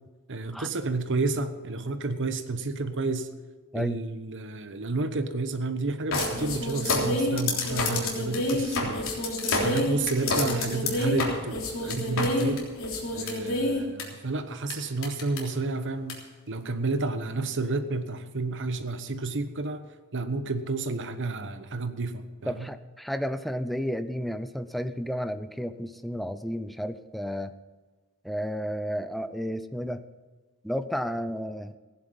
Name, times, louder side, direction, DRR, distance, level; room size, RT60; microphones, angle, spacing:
voice 1, 0.3-3.3 3.7-9.2 9.6-12.7 13.1-16.2 16.5-19.8 20.1-22.7, right 3 dB, 55° right, 10 dB, 1.1 m, -31 dB
sound 1, 6.1-14.0 14.7-14.8 15.0-15.4 16.1-16.2, left 2 dB, 65° left, 3.5 m, -28 dB
voice 2, 22.5-27.5 28.2-30.0 30.6-31.7, equal, ahead, 10 dB, 0.6 m, -32 dB
16.0 x 11.0 x 5.5 m, 1.3 s
head